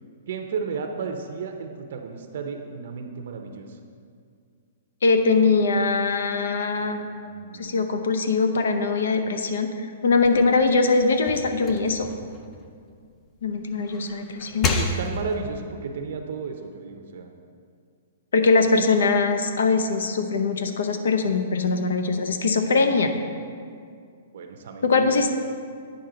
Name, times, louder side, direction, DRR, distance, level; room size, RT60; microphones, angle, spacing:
voice 1, 0.3-3.8 6.8-7.8 14.7-17.3 24.3-25.3, right 5 dB, 55° right, 4 dB, 0.6 m, -34 dB
voice 2, 5.0-7.1 7.6-12.1 13.4-14.7 18.3-23.1 24.8-25.3, left 4 dB, 85° left, 7 dB, 0.7 m, -22 dB
sound 1, 10.1-13.3 13.7-15.5, left 3 dB, 15° left, 0.4 m, -31 dB
8.9 x 5.4 x 3.8 m, 2.2 s
hypercardioid pair, 170°, 0 cm